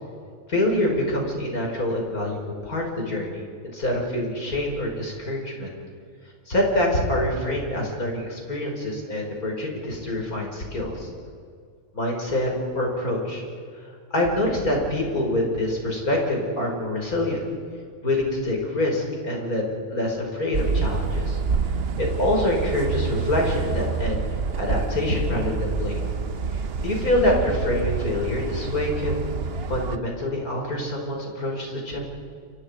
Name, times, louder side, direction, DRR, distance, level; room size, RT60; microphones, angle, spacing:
voice 1, 0.5-5.7 6.5-11.1 11.9-13.4 14.1-17.4 18.0-21.4 22.0-24.2 24.6-26.0 26.5-29.3 29.7-32.0, left 1 dB, 80° left, 0 dB, 5.7 m, -25 dB
sound 1, 20.5-30.0, right 5 dB, 50° right, 1.0 m, -27 dB
29.5 x 25.0 x 5.2 m, 2.2 s
omnidirectional pair, 1.5 m